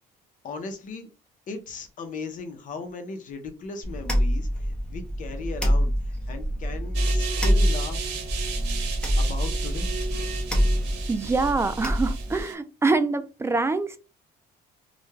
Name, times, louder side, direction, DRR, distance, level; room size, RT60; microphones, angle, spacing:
voice 1, 0.4-1.1 1.5-5.9 6.3-8.0 9.2-10.0, left 3 dB, 50° left, 7 dB, 0.6 m, -37 dB
sound 1, 3.8-12.4, equal, 5° left, 0.7 m, -26 dB
sound 2, 6.9-12.5, right 6 dB, 85° right, 0.7 m, -35 dB
voice 2, 11.1-14.0, right 3 dB, 15° right, 10 dB, 0.3 m, -25 dB
2.4 x 2.1 x 3.1 m, 0.31 s
cardioid pair, 110°, 17 cm